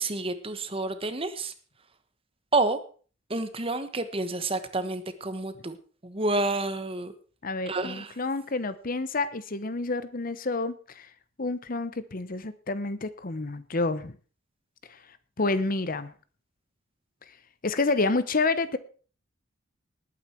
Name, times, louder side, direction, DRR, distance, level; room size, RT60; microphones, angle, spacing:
voice 1, 0.0-1.5 2.5-2.8 3.3-5.8 6.0-7.1 7.7-8.1, right 2 dB, 30° right, 11 dB, 1.2 m, -29 dB
voice 2, 7.4-11.1 11.4-14.2 14.9-15.0 15.4-16.1 17.6-18.8, left 3 dB, 45° left, 14 dB, 0.9 m, -29 dB
19.0 x 9.0 x 4.5 m, 0.40 s
head